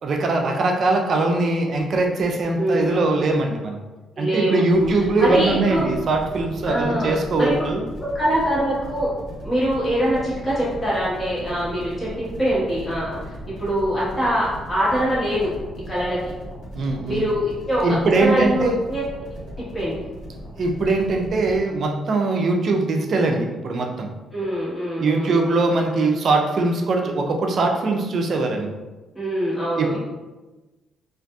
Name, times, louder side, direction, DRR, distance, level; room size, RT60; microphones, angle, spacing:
voice 1, 0.0-3.8 4.2-7.8 16.7-17.3 17.8-18.8 20.6-24.1 25.0-28.7 29.8-30.0, right 3 dB, 55° right, 2 dB, 0.4 m, -21 dB
voice 2, 2.6-3.0 4.2-5.8 6.6-7.5 8.0-9.1 9.4-15.5 15.9-16.2 17.0-19.1 19.6-19.9 24.3-25.8 29.1-30.0, equal, 20° left, -8 dB, 1.3 m, -24 dB
sound 1, 4.7-21.6, equal, 90° left, 1.4 m, -38 dB
2.5 x 2.4 x 2.3 m, 1.2 s
cardioid pair, 90°, 0 cm